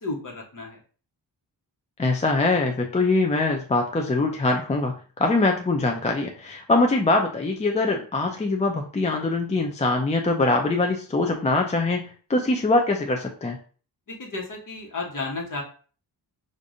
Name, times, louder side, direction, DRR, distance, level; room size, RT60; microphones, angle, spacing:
voice 1, 0.0-0.8 14.1-15.6, left 3 dB, 45° left, 0 dB, 1.2 m, -33 dB
voice 2, 2.0-13.6, left 2 dB, 15° left, 2 dB, 0.4 m, -23 dB
4.8 x 2.6 x 2.6 m, 0.41 s
wide cardioid pair, 105°, 43 cm